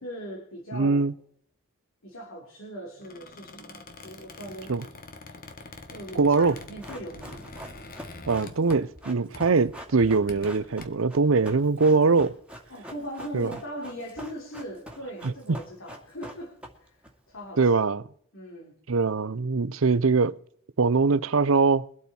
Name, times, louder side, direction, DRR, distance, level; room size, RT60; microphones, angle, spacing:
voice 1, 0.0-1.0 2.0-4.7 5.9-7.5 12.7-17.7 18.3-18.7, equal, 70° left, 3.6 m, -40 dB
voice 2, 0.7-1.1 4.7-4.8 6.2-6.6 8.3-12.3 13.3-13.5 15.2-15.3 17.6-18.0 18.9-20.4 20.8-21.9, right 4 dB, 70° right, 0.6 m, -22 dB
Squeak, 3.0-9.1 9.3-9.6 10.1-10.8, left 3 dB, 40° left, 1.6 m, -45 dB
Run, 6.4-17.1 17.3-17.4, equal, 5° right, 2.4 m, -44 dB
23.5 x 8.3 x 4.4 m
head